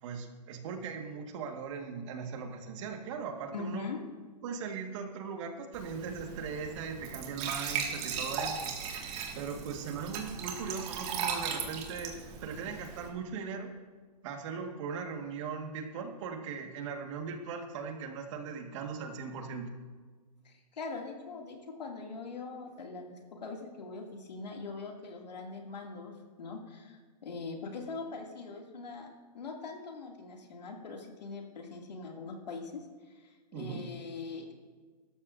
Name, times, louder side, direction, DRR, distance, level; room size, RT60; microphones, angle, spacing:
voice 1, 0.0-3.9 4.4-8.8 9.3-12.2 12.4-13.7 14.2-19.7 33.5-33.8, right 5 dB, 45° right, 4 dB, 1.7 m, -39 dB
voice 2, 3.5-4.0 20.4-34.5, left 4 dB, 80° left, 1 dB, 2.5 m, -42 dB
Glass / Trickle dribble / Fill (with liquid), 5.7-13.1, right 6 dB, 30° right, 2.0 m, -37 dB
17.5 x 13.0 x 2.7 m, 1.5 s
hypercardioid pair, 135°, 21 cm